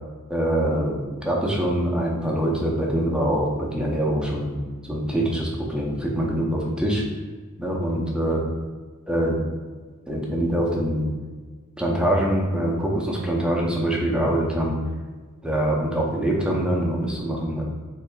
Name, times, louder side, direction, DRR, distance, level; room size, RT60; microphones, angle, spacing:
voice 1, 0.3-4.6 4.8-7.0 7.6-8.4 9.1-9.4 10.1-11.1 11.8-14.8 15.4-17.6, right 1 dB, 5° right, -3 dB, 0.6 m, -24 dB
4.6 x 3.2 x 2.3 m, 1.4 s
head